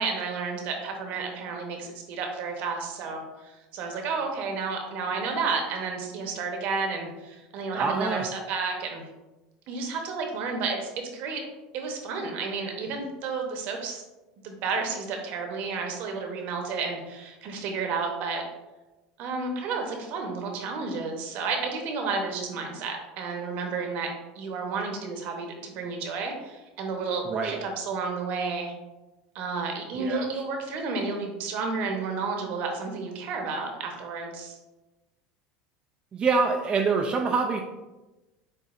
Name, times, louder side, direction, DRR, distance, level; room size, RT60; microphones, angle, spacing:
voice 1, 0.0-3.2 3.7-9.1 9.7-11.4 11.7-14.0 14.4-18.4 19.2-28.7 29.3-34.6, right 4 dB, 60° right, 3 dB, 1.0 m, -31 dB
voice 2, 7.7-8.3 27.3-27.6 29.9-30.4 36.1-37.6, right 4 dB, 30° right, 1 dB, 0.4 m, -26 dB
7.8 x 2.7 x 2.5 m, 1.1 s
supercardioid pair, 120°, 3 cm